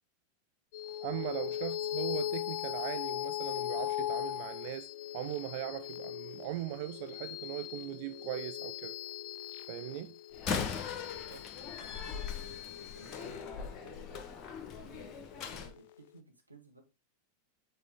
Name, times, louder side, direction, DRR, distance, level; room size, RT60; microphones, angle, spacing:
sound 1, 0.7-15.5, left 12 dB, 50° left, 0.4 m, -39 dB
voice 1, 1.0-9.0 9.7-10.1, right 16 dB, 50° right, 0.3 m, -40 dB
Slam, 10.3-15.7, left 6 dB, 30° left, 1.0 m, -40 dB
voice 2, 10.9-14.1 14.7-16.8, right 2 dB, 85° right, 1.4 m, -56 dB
7.2 x 4.2 x 3.5 m
figure-of-eight pair, 90°, 0 cm